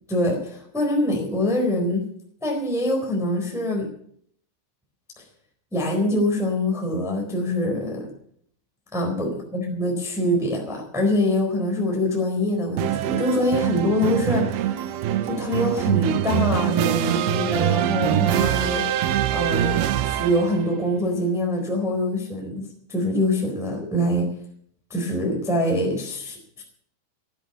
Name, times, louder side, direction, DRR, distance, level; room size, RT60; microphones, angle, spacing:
voice 1, 0.1-2.1 2.4-3.9 5.7-8.1 8.9-14.9 15.2-18.8 19.3-24.3 24.9-26.6, left 1 dB, ahead, 1 dB, 3.2 m, -24 dB
sound 1, 12.8-20.6, right 12 dB, 80° right, 2.2 m, -24 dB
16.0 x 10.5 x 6.9 m, 0.63 s
omnidirectional pair, 5.5 m